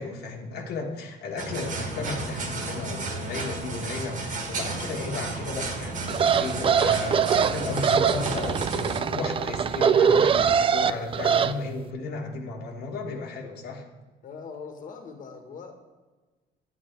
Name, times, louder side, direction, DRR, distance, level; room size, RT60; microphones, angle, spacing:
voice 1, 0.0-13.8, left 3 dB, 75° left, 0 dB, 1.6 m, -34 dB
sound 1, 1.4-9.0, right 3 dB, 50° right, 1.9 m, -33 dB
sound 2, 6.1-11.5, right 7 dB, 30° right, 0.4 m, -23 dB
voice 2, 14.2-15.8, left 5 dB, 50° left, 5 dB, 1.6 m, -41 dB
9.4 x 9.0 x 4.5 m, 1.3 s
cardioid pair, 110°, 17 cm